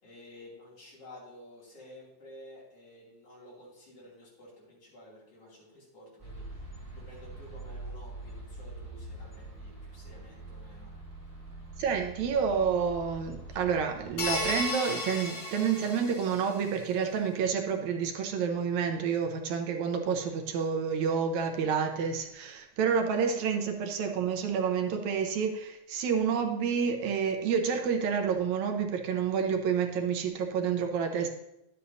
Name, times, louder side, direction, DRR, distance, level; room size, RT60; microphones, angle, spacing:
voice 1, 0.0-10.9, left 1 dB, 55° left, -6 dB, 3.8 m, -52 dB
sound 1, 6.2-14.6, right 2 dB, 10° right, 2.0 m, -44 dB
voice 2, 11.8-31.3, right 6 dB, 80° right, 4 dB, 2.1 m, -29 dB
sound 2, 14.2-16.7, left 1 dB, 35° left, 1.3 m, -34 dB
11.0 x 8.1 x 2.7 m, 0.87 s
omnidirectional pair, 3.3 m